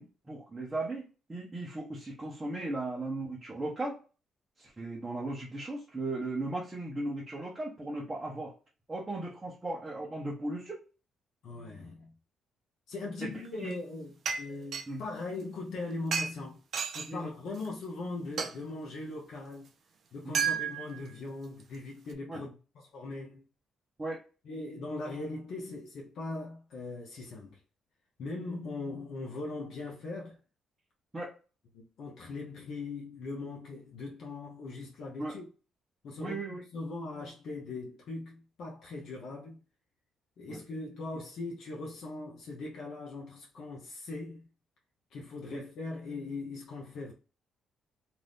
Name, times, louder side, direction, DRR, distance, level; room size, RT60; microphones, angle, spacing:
voice 1, 0.0-4.0 4.6-8.5 8.9-10.8 13.2-13.3 13.6-13.7 14.9-15.0 17.1-17.3 20.2-20.5 22.3-22.4 24.0-24.2 31.1-31.3 35.2-35.4 36.2-36.6 40.5-40.6 45.5-45.6, right 2 dB, 20° right, 0.8 m, -37 dB
voice 2, 11.4-12.1 12.9-16.6 16.9-19.7 20.1-23.4 24.4-27.6 28.2-30.4 31.7-35.4 36.0-36.4 36.7-39.6 40.4-44.5 45.1-47.1, left 3 dB, 70° left, 0.7 m, -40 dB
sound 1, 13.4-13.7 14.2-14.8 16.1-16.3 16.7-17.1 17.6-17.7 18.4-18.5 20.3-21.0 21.6-21.7, right 7 dB, 60° right, 0.4 m, -31 dB
2.6 x 2.5 x 3.4 m
cardioid pair, 90°, 0 cm